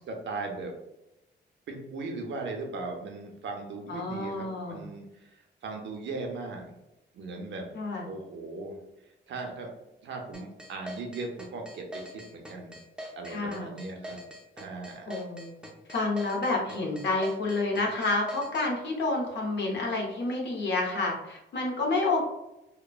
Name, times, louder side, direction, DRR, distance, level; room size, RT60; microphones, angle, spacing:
voice 1, 0.1-0.7 1.7-6.7 7.1-7.7 8.1-8.8 9.3-9.7 10.0-12.8 13.2-14.2 14.6-15.1, right 3 dB, 70° right, 2 dB, 0.6 m, -38 dB
voice 2, 3.9-4.9 7.7-8.1 13.3-13.7 15.1-15.6 15.9-22.2, left 2 dB, 65° left, -1 dB, 0.7 m, -29 dB
sound 1, 10.3-18.7, equal, 5° right, 0.4 m, -43 dB
2.9 x 2.0 x 2.3 m, 0.92 s
wide cardioid pair, 155°, 19 cm